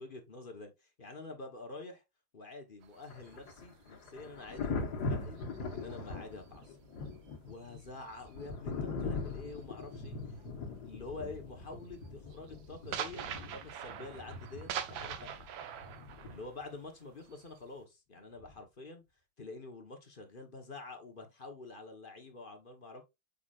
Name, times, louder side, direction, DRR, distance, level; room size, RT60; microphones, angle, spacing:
voice 1, 0.0-2.0 2.3-5.4 5.7-6.8 7.4-10.2 10.8-13.2 13.5-15.3 16.3-19.0 19.4-23.0, left 3 dB, 35° left, 1.0 m, -47 dB
sound 1, 2.8-6.7 7.0-10.4 10.7-11.1 11.4-17.8, right 9 dB, 70° right, 1.5 m, -45 dB
Thunder, 3.1-16.8 18.4-18.6, left 3 dB, 55° left, 1.7 m, -41 dB
7.0 x 5.6 x 2.4 m
omnidirectional pair, 2.3 m